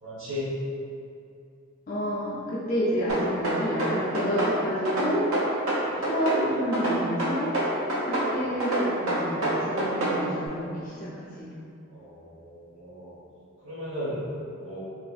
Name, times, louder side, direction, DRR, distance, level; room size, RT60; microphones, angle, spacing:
voice 1, 0.0-0.6 5.8-6.1 8.3-8.4 11.9-13.2 13.6-14.2 14.6-14.8, left 1 dB, 60° right, -15 dB, 1.1 m, -36 dB
voice 2, 1.9-5.3 6.1-7.5 8.0-11.5, equal, 40° left, -10 dB, 0.5 m, -29 dB
sound 1, 3.1-4.5 4.9-6.4 6.7-8.3 8.6-10.2, right 1 dB, 80° right, 0.6 m, -26 dB
3.2 x 2.5 x 2.4 m, 2.5 s
head